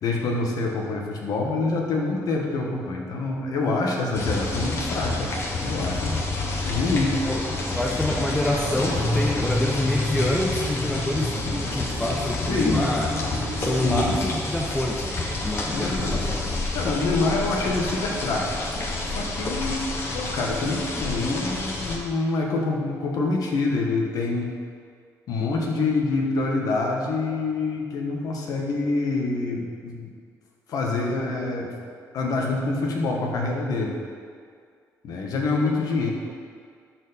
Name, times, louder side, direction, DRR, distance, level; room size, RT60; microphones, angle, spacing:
voice 1, 0.0-5.3 5.6-6.2 6.6-7.2 12.5-12.9 13.8-14.2 15.7-16.2 16.7-18.5 19.0-19.8 20.1-24.5 25.3-30.1 30.7-31.7 32.1-34.0 35.0-36.1, left 3 dB, 70° left, 0 dB, 1.5 m, -26 dB
sound 1, 4.1-22.0, left 2 dB, 40° left, 1.4 m, -28 dB
voice 2, 7.7-13.1 13.6-16.4, left 1 dB, 10° left, -1 dB, 0.8 m, -27 dB
12.0 x 4.7 x 4.2 m, 2.1 s
cardioid pair, 100°, 7 cm